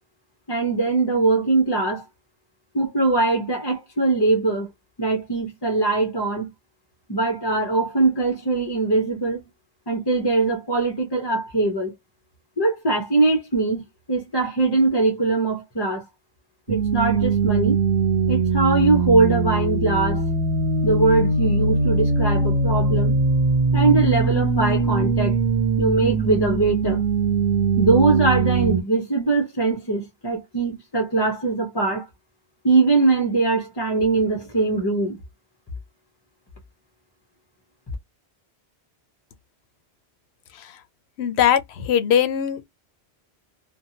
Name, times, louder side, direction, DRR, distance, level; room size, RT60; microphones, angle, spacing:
voice 1, 0.5-2.0 2.7-4.7 5.0-6.5 7.1-9.4 9.9-11.9 12.6-16.1 16.7-17.8 18.3-20.2 20.8-23.2 23.7-25.4 25.8-27.0 27.8-32.1 32.6-35.2, right 3 dB, 30° left, 0.5 m, -21 dB
sound 1, 16.7-28.8, right 4 dB, 90° right, 1.0 m, -21 dB
voice 2, 41.2-42.6, left 9 dB, 75° left, 0.8 m, -20 dB
2.7 x 2.2 x 2.7 m
omnidirectional pair, 1.1 m